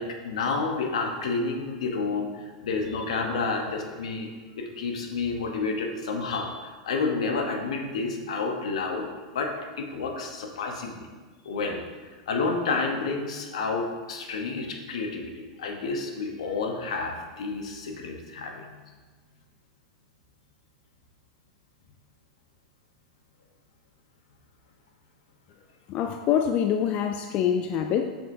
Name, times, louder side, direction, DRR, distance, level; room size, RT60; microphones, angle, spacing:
voice 1, 0.0-4.3 4.6-9.1 9.3-11.0 11.4-18.8, left 4 dB, 75° left, 3 dB, 1.0 m, -30 dB
voice 2, 25.9-28.1, left 8 dB, 40° left, 6 dB, 0.4 m, -25 dB
7.5 x 5.8 x 2.7 m, 1.4 s
hypercardioid pair, 110°, 3 cm